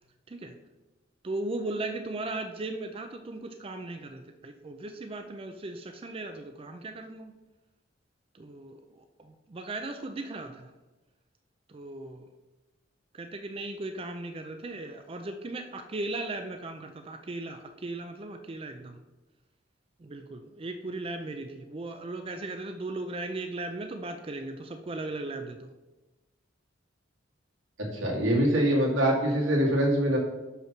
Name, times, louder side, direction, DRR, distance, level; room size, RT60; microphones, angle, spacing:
voice 1, 1.2-7.3 8.3-10.7 11.7-12.2 13.1-19.0 20.0-25.7, right 2 dB, 30° right, 6 dB, 0.4 m, -37 dB
voice 2, 27.9-30.2, right 1 dB, 85° right, -2 dB, 2.3 m, -24 dB
5.9 x 5.6 x 5.9 m, 1.1 s
head